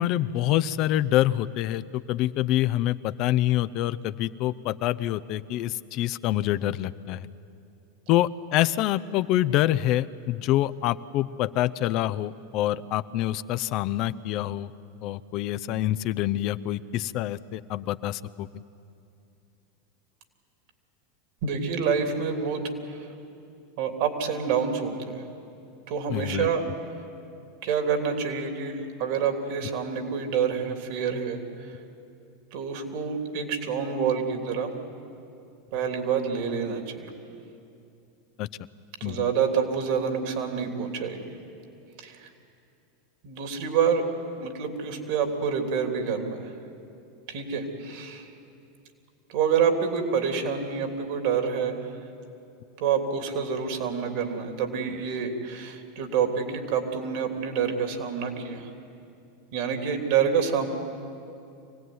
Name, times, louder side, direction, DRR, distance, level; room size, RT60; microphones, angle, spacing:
voice 1, 0.0-7.3 8.1-14.7 15.0-18.5 26.1-26.5 38.4-38.5 39.0-39.3, left 14 dB, 50° left, 14 dB, 0.6 m, -26 dB
voice 2, 21.4-22.6 22.9-23.1 23.8-25.3 25.9-26.6 27.6-31.4 31.7-31.8 32.5-34.7 35.7-37.1 39.0-41.2 42.0-42.3 43.2-44.0 44.4-46.5 47.3-48.3 49.3-51.9 52.8-58.7 59.5-60.7, right 6 dB, 65° right, 4 dB, 3.2 m, -27 dB
25.0 x 17.5 x 9.5 m, 2.6 s
hypercardioid pair, 95°, 0 cm